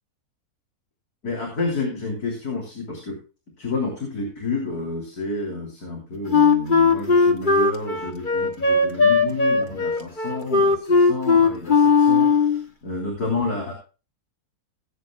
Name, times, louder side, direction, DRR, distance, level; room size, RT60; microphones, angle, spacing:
voice 1, 1.2-3.2 3.6-13.7, left 3 dB, 85° left, 0 dB, 3.8 m, -30 dB
Wind instrument woodwind instrument, 6.3-12.6, left 4 dB, 35° left, 1.6 m, -18 dB
19.0 x 8.7 x 2.3 m, 0.32 s
omnidirectional pair, 1.6 m